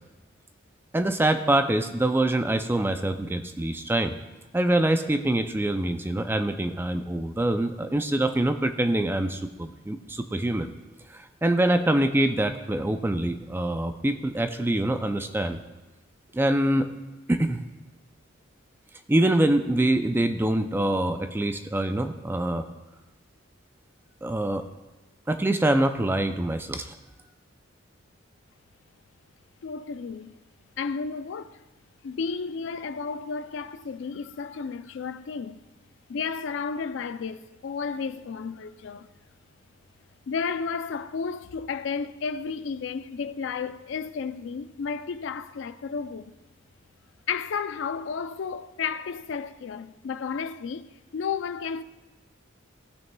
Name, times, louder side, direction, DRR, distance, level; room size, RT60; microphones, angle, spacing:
voice 1, 0.9-4.2 4.5-10.7 11.1-15.6 16.3-16.9 17.3-17.6 19.1-22.7 24.2-24.7 25.3-27.0, right 1 dB, 10° right, 0.3 m, -25 dB
voice 2, 29.6-30.4 30.8-31.6 32.0-35.6 36.1-39.1 40.3-46.3 47.3-51.8, left 5 dB, 65° left, 0.4 m, -32 dB
16.5 x 6.2 x 2.2 m
head